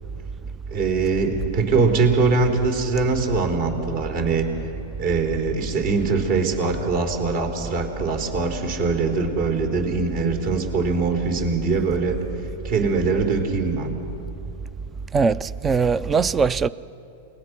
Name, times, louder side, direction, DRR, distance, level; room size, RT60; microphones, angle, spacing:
voice 1, 0.7-4.4 5.0-12.1 12.6-13.9, right 4 dB, 55° right, 3.8 m, -22 dB
voice 2, 15.1-16.7, right 5 dB, 20° right, 0.4 m, -21 dB
28.5 x 20.0 x 6.0 m
hypercardioid pair, 130°, 0 cm